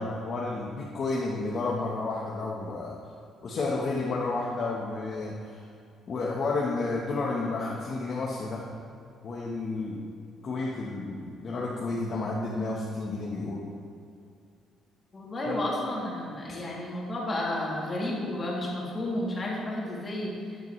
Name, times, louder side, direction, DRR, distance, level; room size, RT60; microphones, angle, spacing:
voice 1, 0.0-3.0 3.4-5.6 6.1-8.6 9.2-10.0 10.4-13.7 15.4-15.6 16.5-16.6, left 3 dB, 40° left, -4 dB, 1.3 m, -31 dB
voice 2, 15.1-20.3, left 1 dB, 25° left, -5 dB, 2.9 m, -32 dB
12.5 x 10.5 x 3.3 m, 2.5 s
cardioid pair, 145°, 0 cm